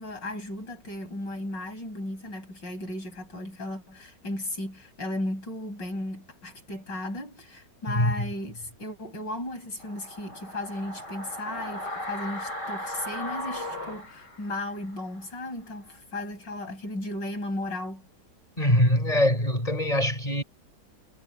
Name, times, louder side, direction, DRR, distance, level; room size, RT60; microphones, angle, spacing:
voice 1, 0.0-18.1, left 1 dB, 90° left, 7.8 m, -35 dB
sound 1, 9.8-14.9 15.2-15.3, left 1 dB, 70° left, 8.2 m, -37 dB
voice 2, 18.6-20.4, left 1 dB, 20° left, 7.3 m, -23 dB
omnidirectional pair, 1.9 m